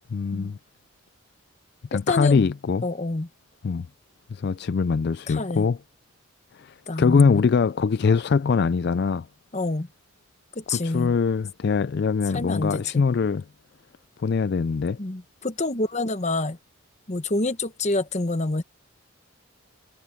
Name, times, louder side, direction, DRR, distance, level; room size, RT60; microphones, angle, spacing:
voice 1, 0.1-0.6 1.9-2.9 3.6-3.9 4.3-5.8 6.5-9.3 10.7-13.4 14.2-15.0, left 5 dB, 50° left, 0.3 m, -22 dB
voice 2, 1.9-2.4 2.8-3.3 5.3-5.7 6.9-7.4 9.5-9.9 10.5-11.2 12.3-13.0 15.0-16.6 17.1-18.6, left 2 dB, 30° left, 1.0 m, -27 dB
head